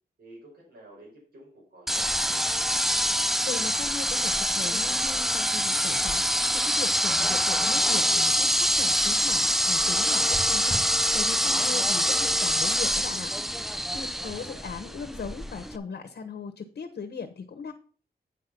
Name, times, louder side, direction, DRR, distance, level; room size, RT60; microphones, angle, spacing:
voice 1, 0.2-2.4 14.0-14.5, right 1 dB, 90° right, -6 dB, 5.1 m, -51 dB
sound 1, 1.9-15.8, equal, ahead, 0.4 m, -25 dB
voice 2, 3.5-13.3 13.9-17.7, left 5 dB, 85° left, 6 dB, 1.1 m, -38 dB
9.1 x 5.4 x 5.8 m, 0.39 s
wide cardioid pair, 140°, 17 cm